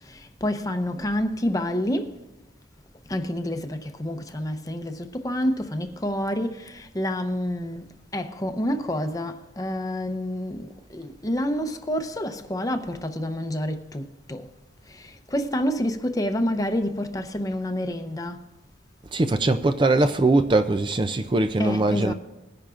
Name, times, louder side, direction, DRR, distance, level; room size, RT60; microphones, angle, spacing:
voice 1, 0.1-2.1 3.1-7.8 8.1-14.5 14.9-18.4 21.6-22.1, equal, 20° left, 0.7 m, -28 dB
voice 2, 19.1-22.1, right 2 dB, 25° right, 0.4 m, -21 dB
20.5 x 10.5 x 2.5 m
head